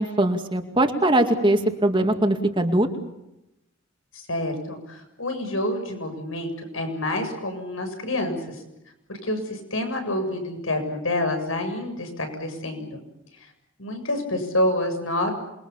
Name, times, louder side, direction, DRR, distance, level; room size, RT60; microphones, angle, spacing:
voice 1, 0.0-2.9, right 1 dB, 25° right, 5 dB, 2.3 m, -21 dB
voice 2, 4.1-8.6 9.1-13.0 13.8-15.3, left 1 dB, 80° left, 6 dB, 7.3 m, -28 dB
27.5 x 23.0 x 7.3 m, 0.89 s
head